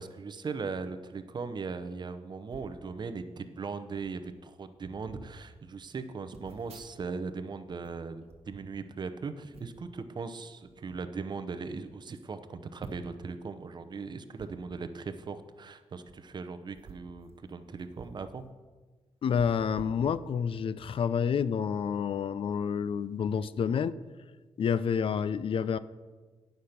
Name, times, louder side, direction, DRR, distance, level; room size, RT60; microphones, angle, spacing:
voice 1, 0.0-18.5, right 4 dB, 40° right, 9 dB, 0.7 m, -39 dB
Phone Handling, 2.5-2.8 3.6-3.7 3.9-4.2 4.8-5.3 6.3-7.4 7.6-9.0 9.5-9.9 10.6-11.0 11.6-11.7 11.9-12.0 12.8-13.3 14.3-14.5 16.0-16.1 16.7-18.2 18.5-18.6 19.3-20.6 21.0-21.2, right 4 dB, 65° right, 1.1 m, -50 dB
voice 2, 19.2-24.0 24.6-25.8, left 7 dB, 55° left, 16 dB, 0.4 m, -29 dB
9.3 x 6.6 x 5.7 m, 1.4 s
cardioid pair, 115°, 11 cm